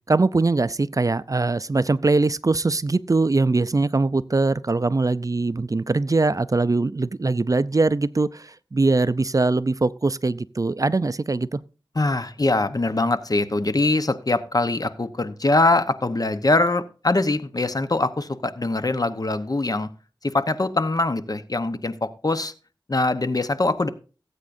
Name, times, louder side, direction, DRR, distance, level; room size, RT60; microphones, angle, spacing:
voice 1, 0.1-11.6, right 3 dB, 45° right, 0.4 m, -22 dB
voice 2, 11.9-19.9 20.2-22.5 22.9-23.9, left 2 dB, 50° left, 0.9 m, -23 dB
18.0 x 8.4 x 2.6 m
wide cardioid pair, 50°, 8 cm